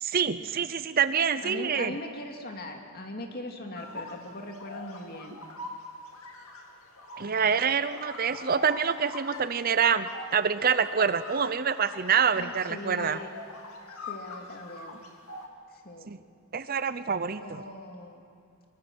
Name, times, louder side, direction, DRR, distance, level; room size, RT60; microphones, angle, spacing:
voice 1, 0.0-2.0 7.2-13.2 16.1-16.2 16.5-17.6, right 6 dB, 40° right, 13 dB, 0.6 m, -26 dB
voice 2, 1.4-5.4 12.3-13.3 13.9-15.0 15.7-16.1 16.6-16.7 17.4-18.2, left 1 dB, 45° left, 2 dB, 2.5 m, -40 dB
sound 1, 3.7-15.5, left 2 dB, 75° left, 2.6 m, -43 dB
24.5 x 22.5 x 6.2 m, 2.3 s
head